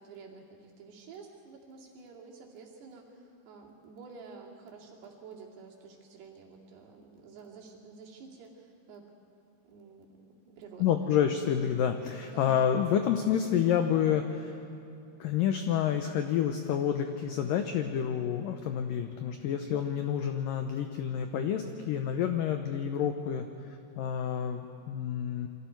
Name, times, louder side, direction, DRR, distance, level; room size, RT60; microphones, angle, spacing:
voice 1, 0.0-9.1 9.6-11.0 12.2-12.6, right 4 dB, 70° right, -2 dB, 4.4 m, -50 dB
voice 2, 10.8-14.6 15.2-23.5 24.0-25.5, left 9 dB, 85° left, 6 dB, 1.9 m, -29 dB
28.5 x 24.0 x 4.6 m, 2.7 s
omnidirectional pair, 5.0 m